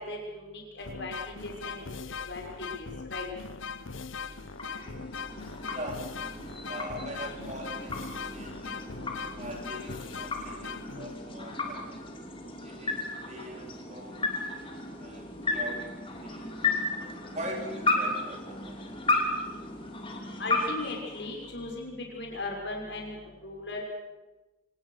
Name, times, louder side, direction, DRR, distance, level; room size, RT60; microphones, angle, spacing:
voice 1, 0.0-1.8 2.2-3.3 20.4-23.8, left 2 dB, 55° left, 0 dB, 6.1 m, -38 dB
sound 1, 0.8-11.4, left 5 dB, 75° left, 1.0 m, -40 dB
sound 2, 4.0-21.8, left 2 dB, 25° left, 3.0 m, -34 dB
voice 2, 5.7-6.0 6.6-8.9 9.3-12.0 12.6-14.2 15.0-16.5 17.0-18.8, right 1 dB, 35° right, 1 dB, 3.3 m, -42 dB
25.5 x 19.0 x 6.6 m, 1.1 s
head